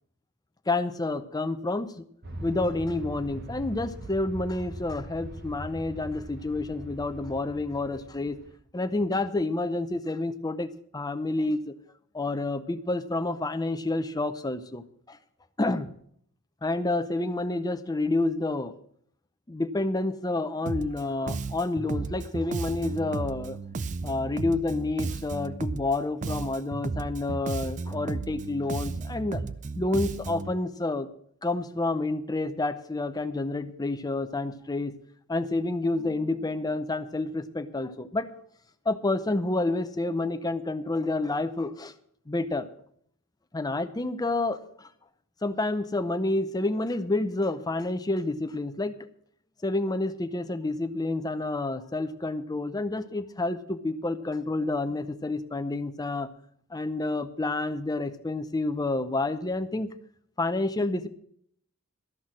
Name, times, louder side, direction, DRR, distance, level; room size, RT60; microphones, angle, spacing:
voice 1, 0.7-2.0 2.4-8.4 8.7-11.7 12.1-15.2 15.6-15.9 16.6-18.7 19.5-23.6 24.0-29.4 29.8-31.1 31.4-34.9 35.3-38.4 38.9-41.9 42.3-42.7 43.5-44.9 45.4-48.9 49.6-56.3 56.7-59.9 60.4-61.1, left 2 dB, 20° left, 10 dB, 0.7 m, -29 dB
Aircraft, 2.2-8.6, right 1 dB, 50° right, 1.3 m, -41 dB
Bass guitar, 20.7-21.0 21.3-26.0 26.2-30.5, right 3 dB, 35° right, 0.4 m, -34 dB
13.5 x 6.2 x 7.5 m, 0.66 s
head